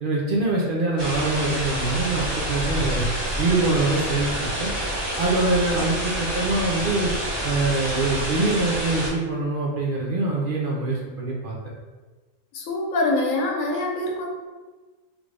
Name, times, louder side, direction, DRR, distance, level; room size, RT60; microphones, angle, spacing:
voice 1, 0.0-3.1 3.4-4.7 5.2-7.1 7.4-11.6, right 2 dB, 60° right, -4 dB, 0.6 m, -24 dB
sound 1, 1.0-9.1, right 1 dB, 20° right, 0.9 m, -28 dB
voice 2, 12.5-14.3, left 2 dB, 85° left, 0 dB, 1.1 m, -24 dB
3.3 x 2.5 x 3.3 m, 1.3 s
omnidirectional pair, 1.4 m